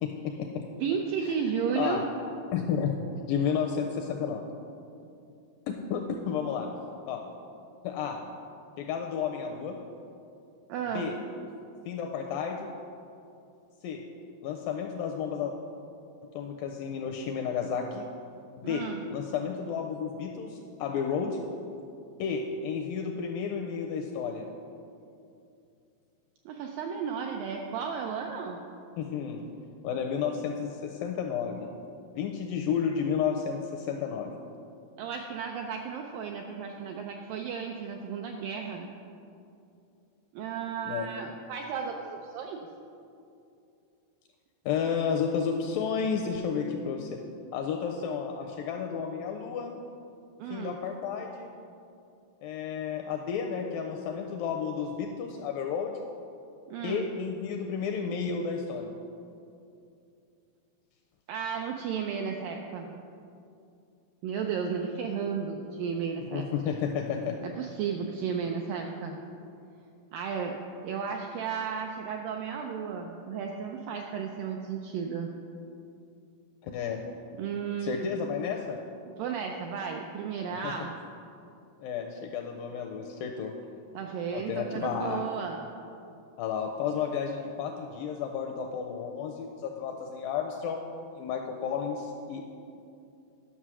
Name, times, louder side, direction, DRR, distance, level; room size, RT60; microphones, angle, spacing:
voice 1, 0.0-0.6 1.2-1.3 1.8-2.0 2.5-2.9 3.3-4.4 5.7-6.7 7.1-7.2 7.8-8.2 8.8-9.8 10.9-11.1 11.9-12.7 13.8-14.0 14.4-15.5 16.4-18.1 18.6-18.8 19.1-21.4 22.2-24.5 29.0-29.4 29.8-31.7 32.2-34.3 40.9-41.1 44.7-47.2 47.5-49.8 50.5-51.5 52.4-56.0 56.8-58.9 66.3-67.4 76.7-77.0 77.8-78.8 80.5-80.7 81.8-83.5 84.3-85.2 86.4-90.8 91.2-92.6, left 7 dB, 85° left, 3 dB, 2.0 m, -32 dB
voice 2, 0.7-2.0 10.7-11.1 18.6-19.0 26.5-28.6 35.0-38.9 40.3-42.7 50.4-50.8 56.7-57.1 61.3-62.9 64.2-66.5 67.4-69.2 70.1-75.3 77.4-78.1 79.2-81.0 83.9-85.6, right 6 dB, 85° right, 2 dB, 1.9 m, -34 dB
11.0 x 6.2 x 6.1 m, 2.6 s
omnidirectional pair, 4.6 m